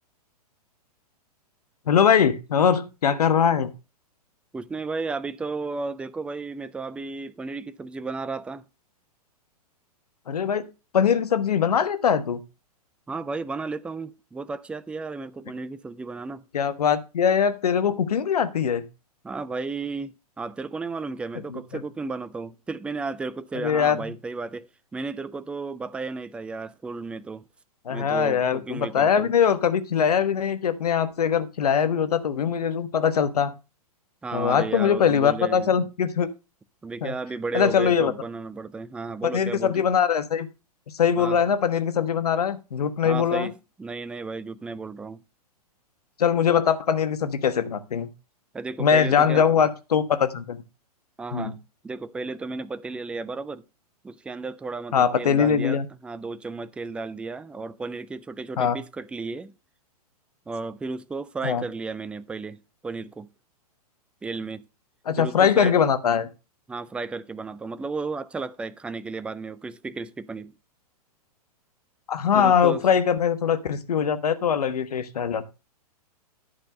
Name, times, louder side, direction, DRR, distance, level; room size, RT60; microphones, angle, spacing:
voice 1, 1.9-3.7 10.3-10.7 10.9-12.4 16.5-18.8 21.5-21.6 23.5-24.1 27.8-33.5 34.3-36.3 37.0-37.1 37.5-38.1 39.3-40.5 40.9-43.5 46.2-48.1 48.8-50.6 51.3-51.5 54.9-55.9 58.6-58.8 61.4-61.6 65.1-66.3 72.1-75.5, left 7 dB, 70° left, 1.2 m, -22 dB
voice 2, 4.5-8.6 13.1-16.4 19.2-27.4 27.9-29.3 34.2-35.7 36.8-39.9 41.2-41.4 43.0-45.2 48.5-49.5 51.2-51.6 51.8-53.6 54.0-59.5 60.5-63.3 64.2-64.6 65.2-65.8 66.7-70.5 72.3-72.9, right 3 dB, 5° right, 0.4 m, -33 dB
11.0 x 4.5 x 6.5 m
hypercardioid pair, 110°, 20 cm